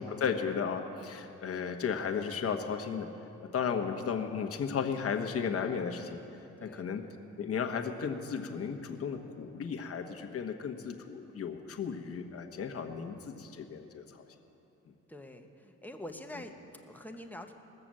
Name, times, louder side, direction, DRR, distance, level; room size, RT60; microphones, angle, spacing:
voice 1, 0.0-3.1 3.5-6.2 6.6-7.0 7.4-14.2, left 6 dB, 50° left, 5 dB, 1.2 m, -34 dB
voice 2, 6.6-6.9 15.1-17.5, left 1 dB, 5° left, 4 dB, 1.0 m, -45 dB
19.5 x 6.8 x 7.6 m, 2.9 s
cardioid pair, 90°, 30 cm